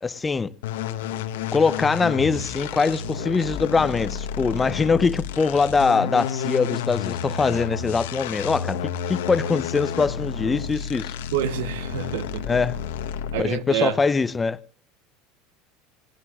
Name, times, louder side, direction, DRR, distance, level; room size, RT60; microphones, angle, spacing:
voice 1, 0.0-0.5 1.5-8.8 9.1-11.1 12.5-12.8 13.4-14.6, left 4 dB, 20° left, 0.7 m, -22 dB
sound 1, 0.6-13.6, left 7 dB, 80° left, 1.1 m, -31 dB
voice 2, 11.3-12.6 13.3-14.0, right 9 dB, 75° right, 1.1 m, -27 dB
27.5 x 18.0 x 2.4 m
hypercardioid pair, 80°, 0 cm